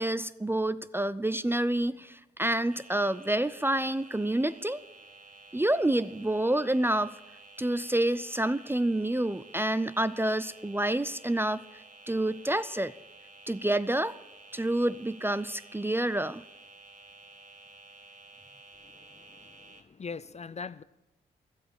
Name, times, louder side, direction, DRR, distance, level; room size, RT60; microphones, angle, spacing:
voice 1, 0.0-4.8 5.5-7.1 7.6-11.6 12.1-12.9 13.5-14.2 14.5-16.4, right 1 dB, 10° right, 0.5 m, -28 dB
sound 1, 2.7-19.8, right 3 dB, 40° right, 1.6 m, -52 dB
voice 2, 18.8-20.8, left 5 dB, 35° left, 0.6 m, -42 dB
12.5 x 8.0 x 8.8 m
hypercardioid pair, 40°, 21 cm